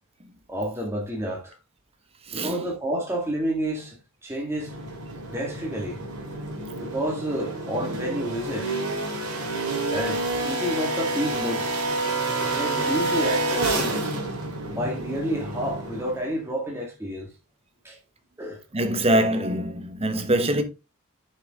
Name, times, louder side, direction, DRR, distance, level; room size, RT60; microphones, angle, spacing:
voice 1, 0.5-1.5 2.3-4.0 4.2-4.7 5.3-6.0 6.8-8.7 9.9-11.8 12.5-14.0 14.7-17.3 17.8-18.0 18.4-18.6, equal, 10° right, 1.9 m, -30 dB
voice 2, 2.3-2.6 18.7-20.6, right 1 dB, 25° right, 1.2 m, -23 dB
sound 1, 4.5-16.4, right 2 dB, 85° right, 3.2 m, -29 dB
7.2 x 6.3 x 3.6 m
head